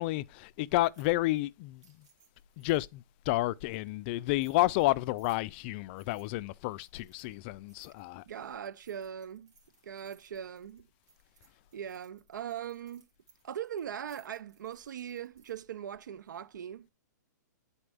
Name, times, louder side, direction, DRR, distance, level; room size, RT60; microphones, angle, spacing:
voice 1, 0.0-2.1 2.6-8.2, left 18 dB, 35° left, 0.3 m, -31 dB
sound 1, 0.7-2.9 3.6-3.9 4.4-5.6 5.9-6.3 6.7-7.4 7.7-15.6, right 5 dB, 65° right, 2.6 m, -66 dB
voice 2, 8.2-9.5 9.8-10.9 11.7-13.1 13.4-16.9, right 9 dB, 80° right, 0.4 m, -40 dB
9.8 x 4.2 x 3.4 m
hypercardioid pair, 140°, 10 cm